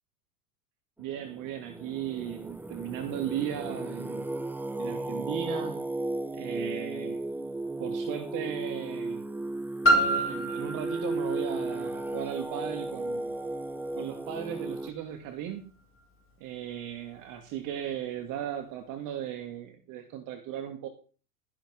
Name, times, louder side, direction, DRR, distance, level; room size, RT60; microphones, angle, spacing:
voice 1, 1.0-4.3 4.8-5.8 6.3-7.2 7.8-9.2 9.9-13.3 14.0-15.7 16.4-20.9, right 10 dB, 45° right, 6 dB, 1.9 m, -37 dB
Singing, 1.1-14.9, right 2 dB, 5° right, 0.7 m, -35 dB
Piano, 9.8-15.3 16.0-16.1, right 1 dB, 25° left, 6.4 m, -30 dB
13.5 x 10.5 x 3.6 m, 0.38 s
figure-of-eight pair, 85°, 45 cm